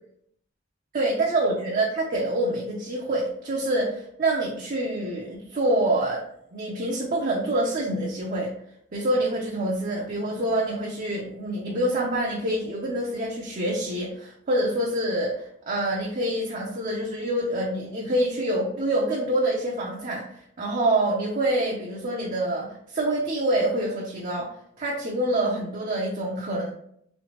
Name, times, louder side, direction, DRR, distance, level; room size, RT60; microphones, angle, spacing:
voice 1, 0.9-6.2 6.5-8.5 8.9-20.2 20.6-26.7, right 1 dB, 45° right, -3 dB, 0.6 m, -26 dB
3.2 x 3.1 x 2.9 m, 0.69 s
head